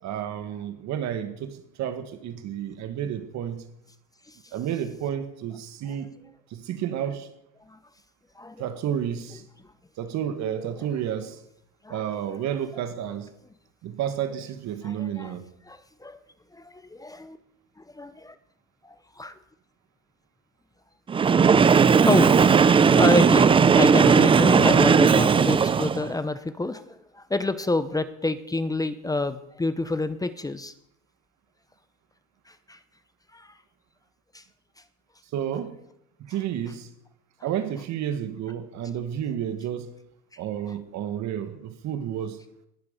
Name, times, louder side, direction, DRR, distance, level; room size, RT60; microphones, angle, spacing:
voice 1, 0.0-3.7 4.5-6.1 6.5-7.3 8.6-9.5 10.0-11.4 11.9-13.3 13.8-15.5 35.3-35.8 36.2-36.9 37.4-39.9 40.4-42.4, right 9 dB, 50° right, 1.7 m, -31 dB
voice 2, 14.8-15.3 15.7-16.2 16.5-17.4 17.9-18.3 18.8-19.4 22.0-22.3 22.9-30.7 32.7-32.8 33.3-33.5 34.3-34.4, left 2 dB, 10° left, 0.8 m, -28 dB
Train, 21.1-26.1, right 6 dB, 15° right, 0.4 m, -17 dB
19.5 x 6.8 x 5.3 m
supercardioid pair, 100°, 36 cm